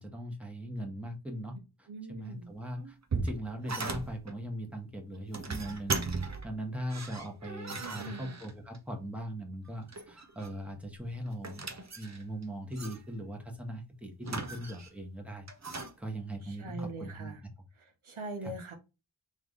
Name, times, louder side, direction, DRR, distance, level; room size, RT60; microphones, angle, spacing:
voice 1, 0.0-11.7 12.0-17.4 18.4-18.5, right 1 dB, 5° right, 1.3 m, -40 dB
voice 2, 1.9-2.5 7.8-8.3 16.5-17.4 17.8-18.7, right 2 dB, 80° right, 1.1 m, -42 dB
sound 1, 2.7-4.3 5.1-6.6 6.9-8.8 9.7-10.5 10.8-12.4 12.8-13.0 14.2-15.0 15.5-15.9, right 3 dB, 35° right, 0.8 m, -37 dB
3.4 x 3.2 x 3.8 m
wide cardioid pair, 50°, 48 cm